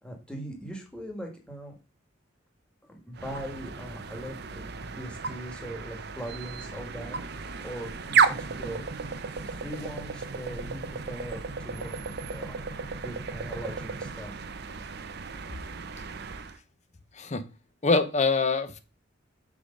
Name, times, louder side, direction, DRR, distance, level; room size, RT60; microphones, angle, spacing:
voice 1, 0.0-1.7 2.8-8.9 9.3-12.6 13.0-14.3, equal, 5° left, 1 dB, 1.5 m, -41 dB
sound 1, 3.1-16.6, right 6 dB, 55° right, 0.7 m, -33 dB
voice 2, 17.1-17.5 17.8-18.8, left 3 dB, 35° left, 12 dB, 0.7 m, -24 dB
6.2 x 4.9 x 5.1 m, 0.32 s
head